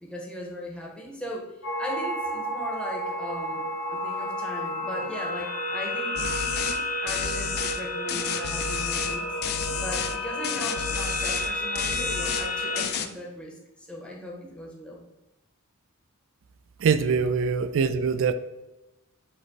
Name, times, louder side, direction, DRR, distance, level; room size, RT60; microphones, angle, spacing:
voice 1, 0.0-3.6 3.9-9.3 9.8-13.5 13.9-15.0, left 1 dB, 5° left, -2 dB, 0.7 m, -38 dB
sound 1, 1.6-12.8, left 1 dB, 65° left, 1.1 m, -31 dB
sound 2, 6.2-6.8 7.1-7.8 8.1-9.2 9.4-10.2 10.4-11.5 11.8-12.5 12.8-13.1, left 8 dB, 50° left, 0.3 m, -31 dB
voice 2, 16.8-18.3, right 6 dB, 65° right, 12 dB, 0.3 m, -23 dB
5.0 x 2.1 x 4.5 m, 0.97 s
head